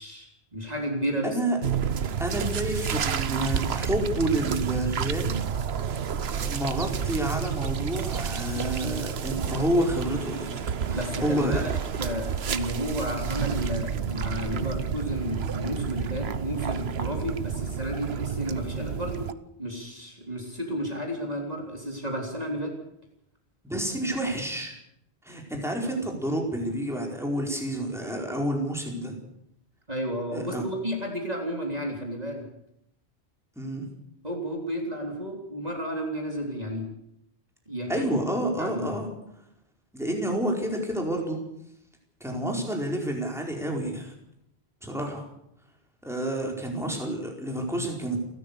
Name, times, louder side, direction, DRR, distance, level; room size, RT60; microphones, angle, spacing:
voice 1, 0.0-1.4 10.9-11.7 12.0-19.3 19.6-22.8 29.9-32.5 34.2-36.9 37.7-38.1 38.6-38.9, equal, 35° right, 1 dB, 3.6 m, -32 dB
voice 2, 1.2-1.6 2.2-5.4 6.4-11.6 13.2-13.4 23.6-24.7 25.2-29.2 30.3-30.6 33.6-33.9 37.9-39.1 39.9-41.4 42.2-44.2 44.8-45.2 46.0-48.2, right 1 dB, ahead, 0 dB, 4.6 m, -29 dB
sound 1, 1.6-19.3, right 7 dB, 70° right, 1.2 m, -30 dB
29.5 x 13.5 x 6.9 m, 0.77 s
omnidirectional pair, 1.1 m